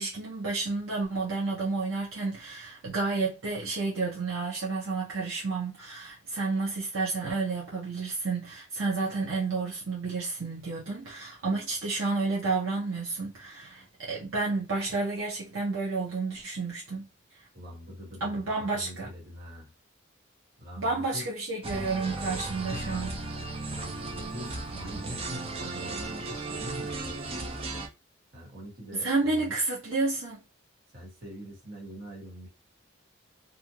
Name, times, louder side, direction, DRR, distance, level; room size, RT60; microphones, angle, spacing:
voice 1, 0.0-17.1 18.2-19.1 20.8-23.1 28.9-30.4, right 3 dB, 70° right, 0.8 m, -31 dB
voice 2, 17.5-19.7 20.6-21.3 22.4-23.0 23.7-27.6 28.3-29.5 30.9-32.5, equal, 45° right, 1.5 m, -43 dB
sound 1, 21.6-27.9, right 3 dB, 25° right, 0.4 m, -36 dB
2.5 x 2.4 x 2.8 m
head